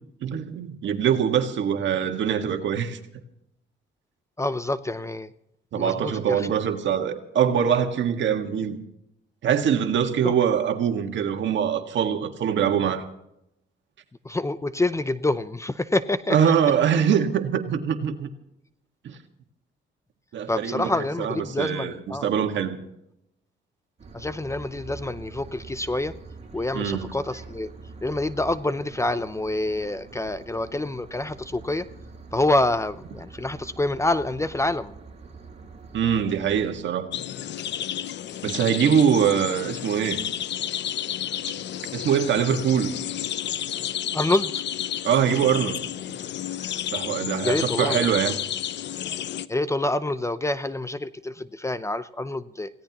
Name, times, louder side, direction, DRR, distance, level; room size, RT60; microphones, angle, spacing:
voice 1, 0.2-3.0 5.7-8.8 9.4-13.0 16.3-18.3 19.0-19.2 20.3-20.9 21.2-22.8 26.7-27.1 35.9-37.1 38.4-40.2 41.9-42.9 45.0-45.9 46.9-48.4, right 8 dB, 70° right, 1.8 m, -23 dB
voice 2, 4.4-5.3 5.8-6.5 10.2-10.3 14.2-16.4 20.5-22.3 24.1-26.1 26.5-27.7 28.0-31.8 32.3-34.9 44.1-44.6 47.4-48.1 49.5-52.7, left 2 dB, 15° left, 0.6 m, -27 dB
sound 1, 24.0-36.8, right 3 dB, 35° right, 5.5 m, -44 dB
sound 2, 37.1-49.5, left 11 dB, 60° left, 0.6 m, -31 dB
27.0 x 17.0 x 3.0 m
cardioid pair, 90°, 20 cm